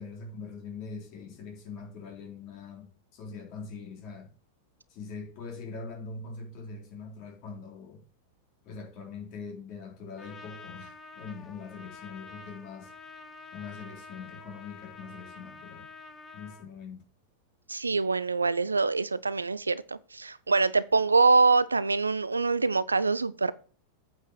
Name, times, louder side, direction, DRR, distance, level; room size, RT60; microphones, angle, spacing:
voice 1, 0.0-4.3 4.9-8.0 8.6-12.9 13.5-15.9 16.3-17.0, left 4 dB, 40° left, 3.3 m, -42 dB
Trumpet, 10.2-16.7, left 4 dB, 15° left, 1.2 m, -48 dB
voice 2, 17.7-23.5, right 4 dB, 80° right, 0.5 m, -24 dB
8.7 x 5.6 x 6.5 m
figure-of-eight pair, 90°, 0 cm